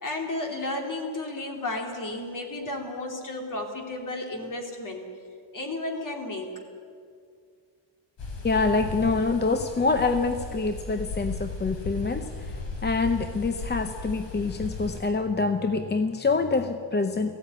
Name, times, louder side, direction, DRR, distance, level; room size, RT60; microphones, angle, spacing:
voice 1, 0.0-5.1 5.5-6.6, left 2 dB, 40° left, 3 dB, 3.1 m, -33 dB
sound 1, 8.2-15.0, left 3 dB, 65° left, 3.6 m, -36 dB
voice 2, 8.4-17.4, left 3 dB, 20° left, 8 dB, 0.7 m, -26 dB
18.0 x 15.5 x 9.6 m, 2.2 s
wide cardioid pair, 155°, 47 cm